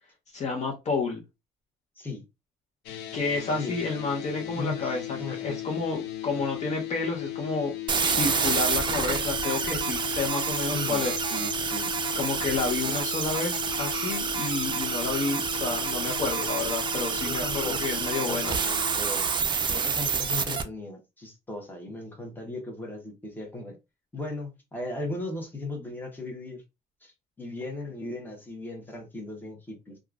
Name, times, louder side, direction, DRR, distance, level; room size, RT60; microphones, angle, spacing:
voice 1, 0.3-1.2 3.1-7.7 8.1-11.2 12.2-18.6, left 4 dB, 45° left, 0.9 m, -30 dB
sound 1, 2.9-19.0, left 15 dB, 80° left, 0.5 m, -37 dB
voice 2, 4.6-5.6 10.7-11.0 11.3-11.9 17.2-18.0 18.3-19.3 19.7-23.8 24.1-26.6 27.0-27.1 27.4-30.0, left 2 dB, 10° left, 1.1 m, -37 dB
sound 2, 7.9-20.6, right 6 dB, 25° right, 0.4 m, -28 dB
2.9 x 2.4 x 2.4 m
cardioid pair, 110°, 17 cm